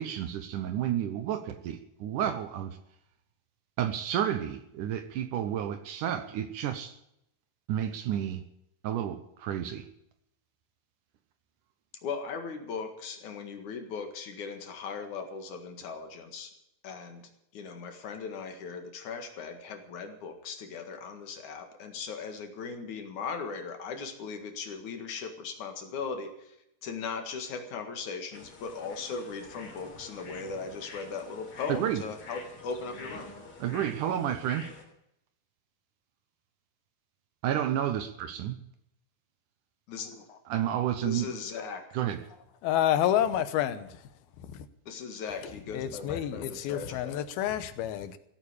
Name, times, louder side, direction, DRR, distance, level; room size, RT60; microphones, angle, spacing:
voice 1, 0.0-2.8 3.8-6.9 7.7-8.4 8.8-9.8 31.7-32.0 33.6-34.7 37.4-38.6 40.5-41.3 41.9-42.2, right 10 dB, 70° right, 2.1 m, -31 dB
voice 2, 12.0-16.5 16.8-17.2 17.5-26.6 26.8-33.3 39.9-40.4 41.0-41.8 44.9-47.2, left 5 dB, 60° left, 3.0 m, -38 dB
sound 1, 28.3-34.8, left 3 dB, 40° left, 4.0 m, -47 dB
voice 3, 42.6-43.9 45.7-48.2, left 11 dB, 85° left, 2.8 m, -28 dB
16.5 x 8.9 x 8.4 m
omnidirectional pair, 4.3 m